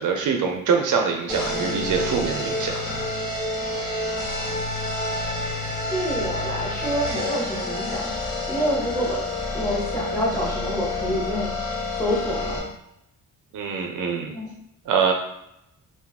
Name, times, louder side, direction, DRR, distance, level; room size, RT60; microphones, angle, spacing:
voice 1, 0.0-2.8 13.5-14.3 14.9-15.1, right 6 dB, 70° right, 3 dB, 0.5 m, -24 dB
sound 1, 1.3-12.6, left 2 dB, 25° left, 1.2 m, -28 dB
voice 2, 5.9-9.3 9.5-11.6 11.9-12.7 14.3-14.5, equal, 5° left, -4 dB, 0.9 m, -27 dB
2.6 x 2.3 x 3.5 m, 0.80 s
cardioid pair, 110°, 33 cm